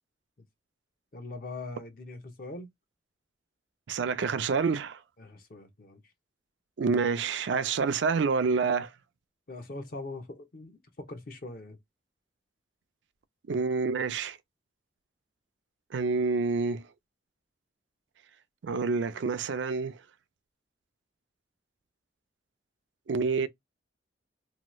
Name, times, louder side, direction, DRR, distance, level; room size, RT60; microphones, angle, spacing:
voice 1, 1.1-2.7 5.2-6.0 9.5-11.8, left 2 dB, 50° left, 0.6 m, -42 dB
voice 2, 3.9-5.0 6.8-8.9 13.5-14.4 15.9-16.9 18.6-20.0 23.1-23.5, right 4 dB, 85° right, 0.4 m, -28 dB
2.8 x 2.3 x 2.9 m
head